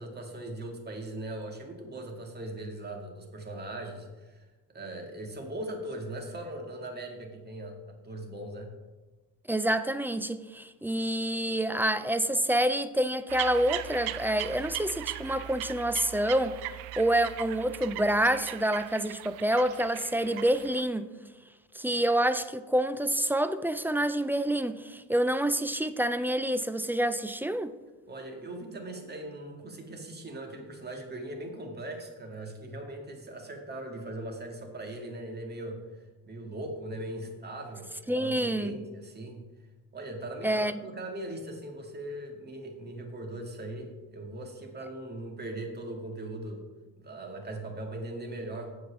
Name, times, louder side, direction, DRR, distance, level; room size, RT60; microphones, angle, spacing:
voice 1, 0.0-4.5 4.7-8.7 28.1-35.8 36.2-39.4 39.9-46.6 47.0-48.7, right 1 dB, 25° right, 2 dB, 2.0 m, -39 dB
voice 2, 9.5-16.6 17.0-21.1 21.7-27.7 38.1-38.8 40.4-40.8, right 1 dB, 5° right, 12 dB, 0.3 m, -27 dB
sound 1, 13.3-20.8, right 14 dB, 70° right, 0.6 m, -39 dB
7.8 x 4.8 x 7.2 m, 1.2 s
supercardioid pair, 90°, 39 cm